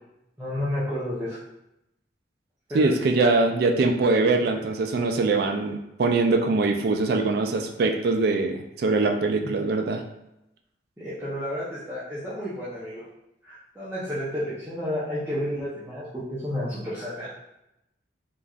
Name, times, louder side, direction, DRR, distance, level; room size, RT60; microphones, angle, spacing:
voice 1, 0.4-1.4 2.7-3.4 4.5-4.7 9.4-9.5 11.0-13.0 13.4-17.3, equal, 10° right, -11 dB, 0.6 m, -31 dB
voice 2, 2.7-10.0, right 3 dB, 55° right, 4 dB, 0.3 m, -23 dB
3.0 x 2.5 x 2.3 m, 0.87 s
head